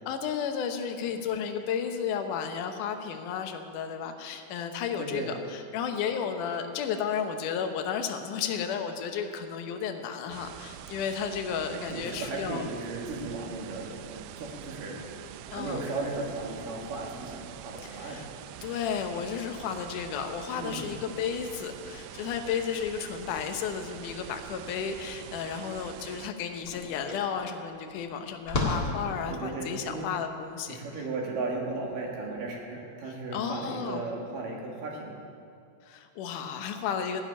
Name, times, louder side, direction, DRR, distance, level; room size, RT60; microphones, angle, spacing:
voice 1, 0.1-12.7 15.5-15.8 17.8-18.3 18.6-30.8 33.1-34.0 35.8-37.3, left 7 dB, 75° left, 6 dB, 1.9 m, -33 dB
voice 2, 5.0-5.3 11.7-15.0 15.5-18.2 20.6-20.9 29.3-30.1 30.7-35.1, right 3 dB, 60° right, -1 dB, 3.2 m, -36 dB
sound 1, 10.3-26.3, right 12 dB, 90° right, 2.7 m, -45 dB
sound 2, 26.4-32.4, left 2 dB, 45° left, 1.2 m, -36 dB
14.5 x 7.3 x 9.9 m, 2.4 s
omnidirectional pair, 4.8 m